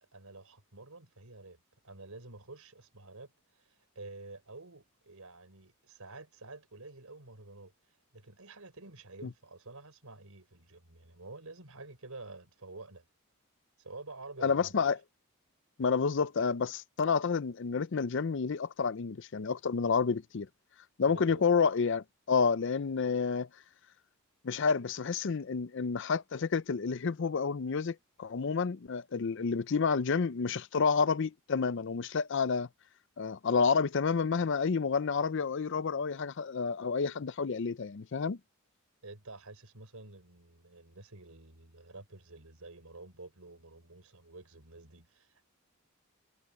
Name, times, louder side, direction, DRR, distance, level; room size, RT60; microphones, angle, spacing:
voice 1, 0.0-7.7 8.1-13.0 13.8-14.8 21.1-21.4 39.0-45.4, right 3 dB, 80° right, 4.4 m, -49 dB
voice 2, 14.4-15.0 15.8-20.5 21.0-23.5 24.4-32.7 33.2-38.4, left 5 dB, 55° left, 0.5 m, -29 dB
head